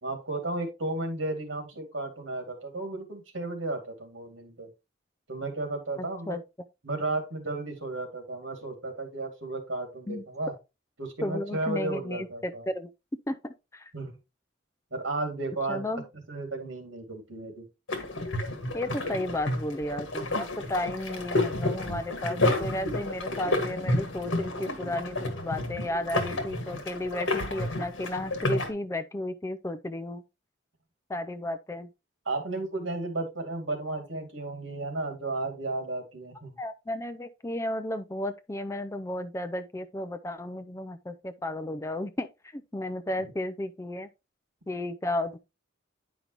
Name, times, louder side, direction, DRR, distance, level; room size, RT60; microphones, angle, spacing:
voice 1, 0.0-4.7 5.3-6.4 6.8-10.5 11.0-12.7 13.9-14.2 14.9-16.0 16.3-17.7 32.3-36.6 43.2-43.3, right 2 dB, 70° right, 2.3 m, -34 dB
voice 2, 6.0-6.4 10.1-10.2 11.2-12.9 13.3-13.9 15.7-16.0 18.7-30.2 31.1-31.9 36.6-44.1 44.7-45.4, left 1 dB, 15° left, 0.4 m, -33 dB
sound 1, 17.9-28.7, left 2 dB, 70° left, 1.6 m, -30 dB
9.5 x 5.2 x 2.9 m
head